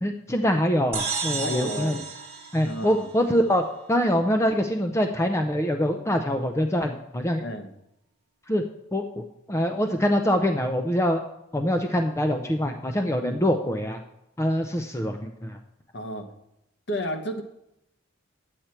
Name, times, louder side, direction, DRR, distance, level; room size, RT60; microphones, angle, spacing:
voice 1, 0.0-2.0 2.5-3.6 3.9-7.4 8.5-8.6 8.9-9.2 9.5-11.2 11.5-14.0 14.4-15.6, equal, 15° left, 5 dB, 0.5 m, -24 dB
sound 1, 0.9-3.5, right 5 dB, 30° right, 1.5 m, -33 dB
voice 2, 1.3-2.1 2.6-3.1 7.4-7.7 13.2-13.4 15.9-16.3 16.9-17.4, left 1 dB, 55° left, 5 dB, 1.2 m, -31 dB
10.0 x 8.1 x 4.4 m, 0.83 s
head